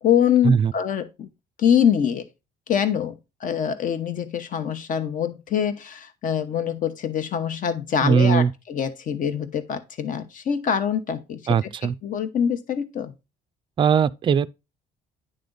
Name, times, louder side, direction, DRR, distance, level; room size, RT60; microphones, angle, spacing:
voice 1, 0.0-1.3 1.6-2.3 2.7-13.1, left 8 dB, 50° left, 1.0 m, -24 dB
voice 2, 8.0-8.5 11.5-11.9 13.8-14.5, right 7 dB, 30° right, 0.4 m, -19 dB
10.0 x 3.4 x 3.9 m
cardioid pair, 110°, 17 cm